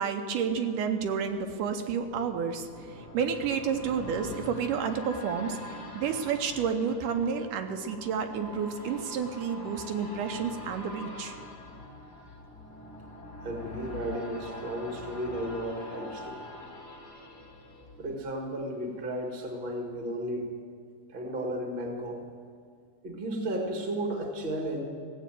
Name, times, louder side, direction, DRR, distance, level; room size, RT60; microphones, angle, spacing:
voice 1, 0.0-2.7 3.0-5.6 6.0-11.4, right 6 dB, 80° right, 6 dB, 2.3 m, -30 dB
sound 1, 1.0-18.6 19.1-19.2, left 1 dB, 30° left, 1.9 m, -44 dB
voice 2, 13.4-16.4 18.0-20.5 21.1-22.2 23.0-24.8, right 1 dB, 25° right, 1 dB, 1.2 m, -34 dB
16.5 x 8.2 x 7.6 m, 2.2 s
omnidirectional pair, 3.8 m